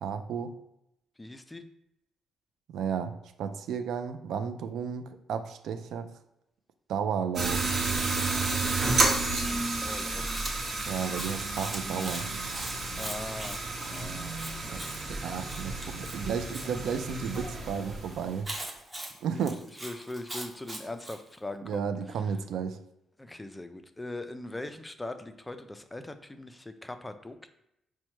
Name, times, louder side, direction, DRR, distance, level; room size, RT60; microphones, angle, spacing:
voice 1, 0.0-0.5 2.7-3.1 3.4-6.1 6.9-7.7 10.9-12.3 14.7-14.8 15.2-18.5 19.2-19.6 21.6-22.8, right 7 dB, 75° right, 9 dB, 0.3 m, -33 dB
voice 2, 1.2-1.7 9.4-10.4 13.0-13.6 13.8-14.4 19.3-19.5 19.8-21.9 23.2-27.5, left 2 dB, 15° left, 9 dB, 0.3 m, -40 dB
sound 1, 7.4-18.4, right 3 dB, 55° right, 0.9 m, -31 dB
Chewing mastication, 10.3-16.7 18.4-21.2, right 1 dB, 15° right, 0.8 m, -41 dB
4.4 x 2.1 x 3.0 m, 0.83 s
cardioid pair, 90°, 0 cm